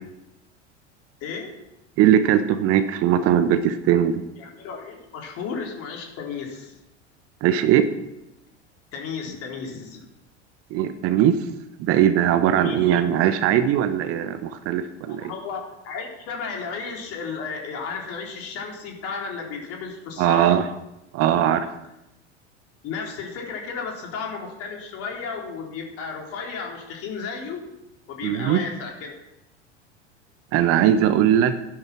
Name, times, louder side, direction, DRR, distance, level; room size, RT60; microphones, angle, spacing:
voice 1, 1.2-1.6 4.4-6.8 8.9-10.0 12.5-12.8 15.1-20.6 22.8-27.7 28.1-29.1, left 5 dB, 40° left, 0 dB, 4.0 m, -33 dB
voice 2, 2.0-4.2 7.4-7.9 10.7-11.5 11.8-15.3 20.2-20.7 21.1-21.7 28.2-28.6 30.5-31.6, right 10 dB, 40° right, 11 dB, 1.1 m, -20 dB
14.0 x 11.0 x 6.1 m, 0.91 s
figure-of-eight pair, 80°, 35 cm